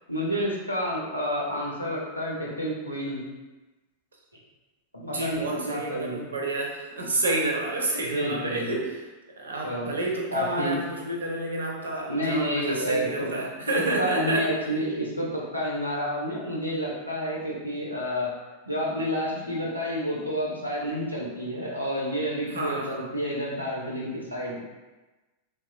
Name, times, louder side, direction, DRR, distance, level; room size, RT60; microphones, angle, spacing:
voice 1, 0.1-3.2 5.1-6.3 8.1-8.7 9.6-10.0 10.3-10.8 12.1-13.3 13.7-18.3 18.7-24.6, equal, 90° left, -5 dB, 0.6 m, -29 dB
voice 2, 5.0-9.0 9.4-14.5 19.3-19.6 22.5-23.0, right 2 dB, 70° right, 0 dB, 0.5 m, -30 dB
2.9 x 2.3 x 2.2 m, 1.2 s
figure-of-eight pair, 90°, 0 cm